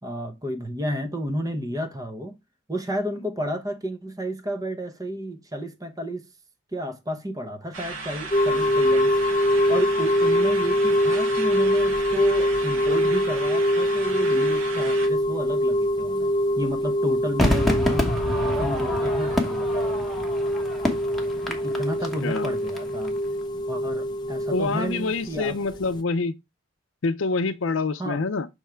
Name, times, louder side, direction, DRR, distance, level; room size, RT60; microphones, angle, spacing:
voice 1, 0.0-2.4 2.7-6.3 6.7-9.2 9.7-16.3 16.6-20.1 21.5-23.1 23.7-25.6 28.0-28.2, equal, 15° right, 0.8 m, -31 dB
sound 1, 7.7-15.1, right 3 dB, 80° right, 1.8 m, -35 dB
sound 2, 8.3-26.0, equal, 20° left, 0.5 m, -24 dB
Crowd / Fireworks, 17.4-22.8 23.0-23.1, left 1 dB, ahead, 1.1 m, -27 dB
voice 2, 22.2-22.5 24.5-26.3 27.0-28.5, left 3 dB, 65° left, 0.6 m, -26 dB
6.3 x 3.6 x 4.4 m
head